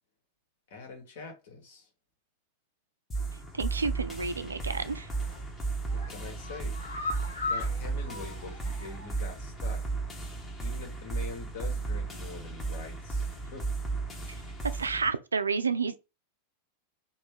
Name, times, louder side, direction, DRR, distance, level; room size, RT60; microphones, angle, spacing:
voice 1, 0.7-1.9 5.9-6.8 7.5-9.8 10.6-13.7, left 4 dB, 60° left, 1.4 m, -44 dB
sound 1, 3.1-15.1, right 3 dB, 20° left, 1.1 m, -34 dB
voice 2, 3.5-5.1 14.7-16.1, right 5 dB, 80° right, 0.3 m, -30 dB
sound 2, 5.1-5.4 5.8-9.2 9.5-9.6 10.0-10.1, left 3 dB, 80° left, 0.9 m, -38 dB
3.1 x 2.6 x 3.6 m
figure-of-eight pair, 90°, 0 cm